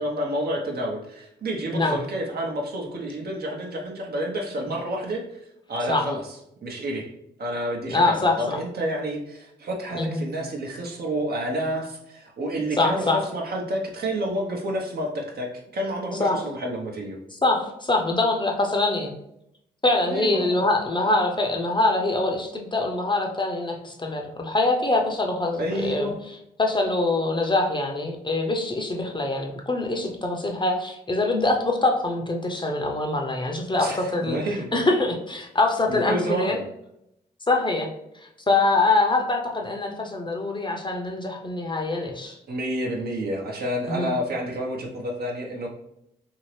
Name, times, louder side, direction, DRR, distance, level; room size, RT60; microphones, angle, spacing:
voice 1, 0.0-5.4 5.7-6.2 6.6-7.1 7.4-17.2 20.0-20.6 25.6-26.2 33.8-34.7 35.9-36.6 42.5-45.7, right 1 dB, 55° right, 0 dB, 0.8 m, -29 dB
voice 2, 7.9-8.6 9.9-10.2 12.8-13.2 16.2-16.5 17.4-19.1 19.8-26.1 26.6-34.4 34.7-36.6 37.5-37.9 38.1-42.4 43.9-44.1, left 2 dB, 25° left, 1 dB, 0.7 m, -24 dB
2.8 x 2.7 x 3.2 m, 0.78 s
hypercardioid pair, 40°, 19 cm